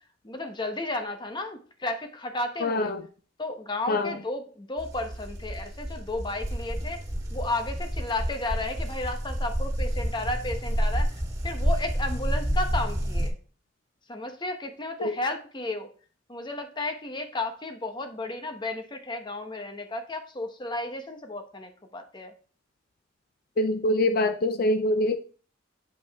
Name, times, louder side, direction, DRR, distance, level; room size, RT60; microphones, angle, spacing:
voice 1, 0.2-2.9 3.4-7.0 7.3-13.3 14.1-15.9 16.3-22.3, left 2 dB, 25° left, 0.9 m, -33 dB
voice 2, 2.6-3.0 3.9-4.1 15.0-15.2 23.6-25.2, left 1 dB, 55° left, 0.5 m, -24 dB
sound 1, 4.8-13.3, equal, 20° right, 2.1 m, -29 dB
7.7 x 5.1 x 3.5 m
head